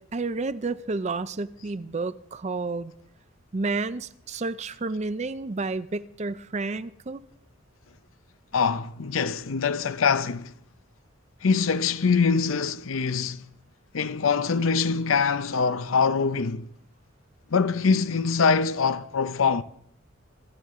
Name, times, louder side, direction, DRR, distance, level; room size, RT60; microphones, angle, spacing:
voice 1, 0.0-2.9 3.5-7.2, right 3 dB, 35° right, 0.5 m, -30 dB
voice 2, 8.5-10.5 11.4-13.5 13.9-16.7 17.5-19.6, left 5 dB, 80° left, 0.6 m, -24 dB
25.5 x 12.0 x 3.7 m
head